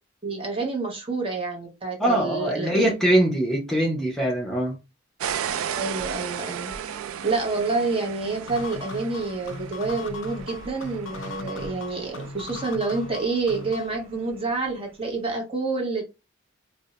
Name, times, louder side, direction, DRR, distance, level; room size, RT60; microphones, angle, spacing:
voice 1, 0.2-2.9 5.8-6.7 7.2-16.0, right 3 dB, 25° right, 0.9 m, -28 dB
voice 2, 2.0-4.7, right 1 dB, ahead, 0.7 m, -22 dB
sound 1, 5.2-14.8, right 8 dB, 90° right, 0.3 m, -36 dB
sound 2, 8.5-14.0, left 3 dB, 60° left, 0.4 m, -38 dB
2.6 x 2.1 x 3.9 m
head